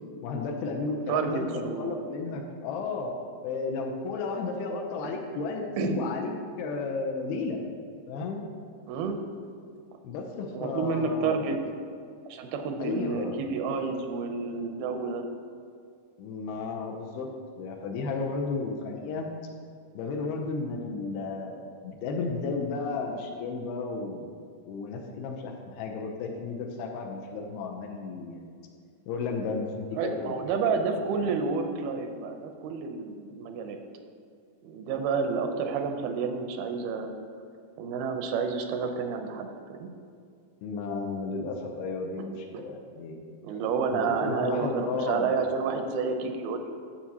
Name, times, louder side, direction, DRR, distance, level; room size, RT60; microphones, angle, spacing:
voice 1, 0.2-3.1 3.4-6.3 6.6-7.6 8.1-8.4 10.0-11.4 12.8-13.4 16.2-17.3 17.6-19.3 20.0-24.3 24.7-28.4 29.1-30.4 30.7-30.8 40.6-43.3 43.9-45.3, left 4 dB, 85° left, 1 dB, 2.7 m, -33 dB
voice 2, 1.1-2.0 5.8-6.0 8.9-9.2 10.5-11.6 12.3-15.2 29.9-33.8 34.6-37.1 37.8-39.9 42.5-42.6 43.4-46.7, right 5 dB, 85° right, 5 dB, 2.5 m, -30 dB
12.0 x 7.1 x 2.8 m, 2.2 s
omnidirectional pair, 4.4 m